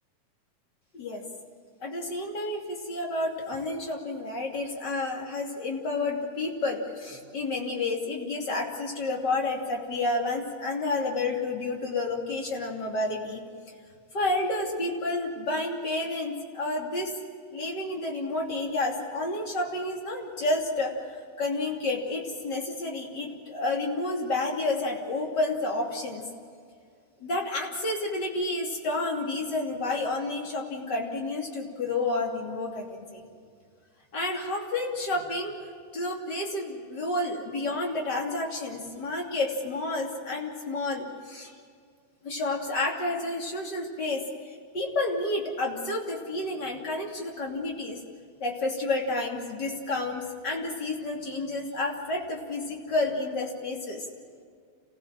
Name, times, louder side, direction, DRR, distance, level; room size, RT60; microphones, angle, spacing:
voice 1, 1.8-13.4 14.1-17.1 17.5-26.2 27.2-33.3 34.1-35.5 35.9-41.6 42.2-48.0 48.4-54.1, left 2 dB, 30° left, 0 dB, 3.0 m, -30 dB
28.5 x 16.0 x 7.5 m, 2.1 s
omnidirectional pair, 4.0 m